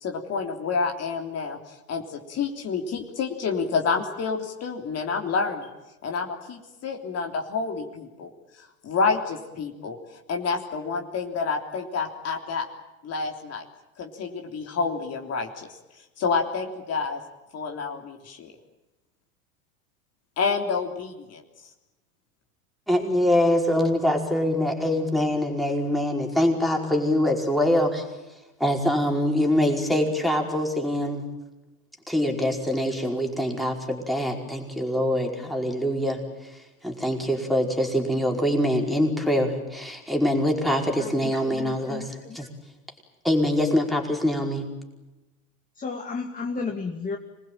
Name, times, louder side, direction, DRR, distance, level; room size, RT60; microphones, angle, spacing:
voice 1, 0.0-1.6 1.9-5.7 6.0-8.3 8.8-10.0 10.3-12.7 13.0-13.6 14.0-15.7 16.2-17.2 17.5-18.5 20.4-21.4, left 5 dB, 35° left, 2 dB, 3.4 m, -28 dB
voice 2, 22.9-28.0 28.6-31.2 32.1-36.2 36.5-42.5 43.2-44.7, left 1 dB, ahead, 1 dB, 5.0 m, -24 dB
voice 3, 41.0-42.1 45.8-47.2, left 4 dB, 20° left, 2 dB, 2.5 m, -33 dB
26.0 x 20.5 x 9.1 m, 1.0 s
hypercardioid pair, 105°, 43 cm